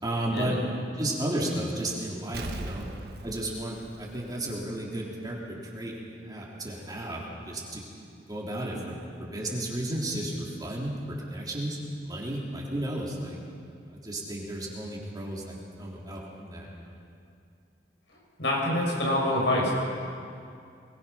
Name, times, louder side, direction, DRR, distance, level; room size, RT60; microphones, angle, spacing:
voice 1, 0.0-0.6 1.0-2.9 3.2-7.8 8.3-11.8 12.0-13.4 13.9-16.9, right 1 dB, 25° right, -4 dB, 3.7 m, -33 dB
Explosion, 2.3-4.9 5.3-5.4, right 1 dB, 60° right, 1.2 m, -39 dB
voice 2, 18.4-19.7, left 1 dB, 80° left, -3 dB, 6.9 m, -26 dB
23.5 x 21.0 x 5.8 m, 2.4 s
head